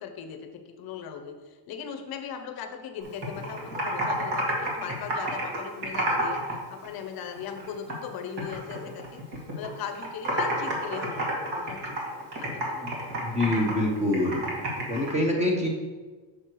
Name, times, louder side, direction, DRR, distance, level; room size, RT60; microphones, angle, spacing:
voice 1, 0.0-9.2 9.6-12.9 13.3-13.4, left 7 dB, 50° left, 6 dB, 0.7 m, -39 dB
Computer keyboard, 3.0-6.5 6.8-8.1 8.4-9.7 9.9-15.1, right 1 dB, 55° right, 2.2 m, -30 dB
voice 2, 13.2-14.4 14.9-15.7, left 1 dB, 15° right, 0 dB, 1.0 m, -25 dB
6.4 x 6.4 x 4.6 m, 1.4 s
cardioid pair, 175°, 48 cm